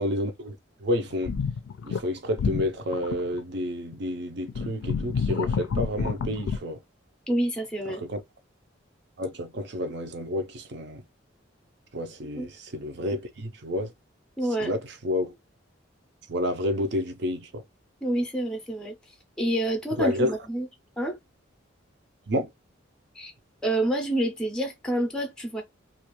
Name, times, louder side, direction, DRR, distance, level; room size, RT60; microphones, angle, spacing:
voice 1, 0.0-1.4 1.8-6.8 7.9-8.2 9.2-11.0 11.9-13.9 14.6-15.4 16.3-17.6 19.9-20.3 22.3-22.5, left 1 dB, 55° right, 0.6 m, -30 dB
sound 1, 1.1-2.0 2.4-3.4 3.9-4.0 4.5-6.6, left 5 dB, 75° left, 0.4 m, -28 dB
voice 2, 7.3-8.0 12.4-12.5 14.4-14.7 18.0-18.9 19.4-20.7 21.0-21.2 23.2-23.3 23.6-25.6, right 1 dB, 5° left, 0.5 m, -27 dB
2.4 x 2.3 x 2.9 m
head